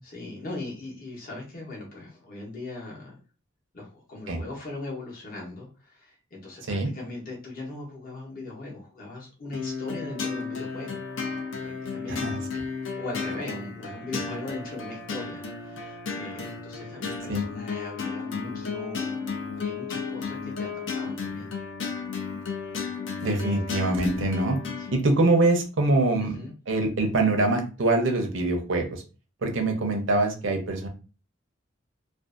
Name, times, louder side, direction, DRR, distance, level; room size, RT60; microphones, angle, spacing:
voice 1, 0.0-3.2 3.7-11.0 11.6-12.4 12.9-21.5 24.8-25.1 26.2-26.5, left 2 dB, 45° left, -3 dB, 0.8 m, -39 dB
sound 1, 9.5-25.0, left 5 dB, 65° left, 0.5 m, -33 dB
voice 2, 12.1-12.4 17.3-17.4 23.2-24.6 24.9-26.4 26.7-29.0 29.4-30.9, right 2 dB, 70° right, 3 dB, 0.7 m, -24 dB
2.5 x 2.4 x 2.4 m, 0.34 s
head